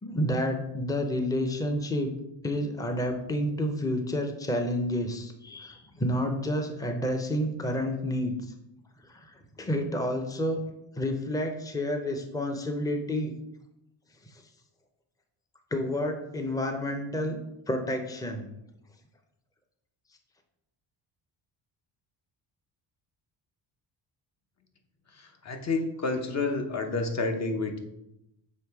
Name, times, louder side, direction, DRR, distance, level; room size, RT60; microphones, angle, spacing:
voice 1, 0.0-2.1 2.4-8.3 9.1-10.6 11.0-13.3 15.7-17.4 17.7-18.5, equal, 10° left, 4 dB, 0.6 m, -29 dB
voice 2, 25.2-27.8, left 3 dB, 35° left, 5 dB, 0.9 m, -29 dB
6.4 x 3.2 x 4.7 m, 0.85 s
cardioid pair, 105°, 44 cm